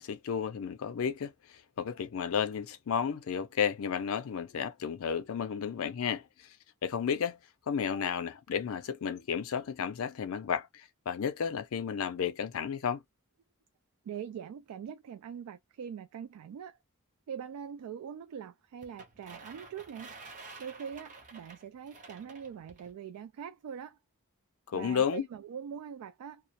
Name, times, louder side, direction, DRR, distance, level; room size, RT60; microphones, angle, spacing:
voice 1, 0.0-6.5 6.8-7.4 7.7-13.0 24.7-25.3, left 7 dB, 65° left, 0.4 m, -32 dB
voice 2, 14.0-16.8 17.3-20.1 20.6-24.0 24.7-26.4, right 8 dB, 85° right, 0.3 m, -43 dB
sound 1, 18.8-22.9, right 3 dB, 35° right, 0.5 m, -50 dB
2.3 x 2.1 x 2.7 m
head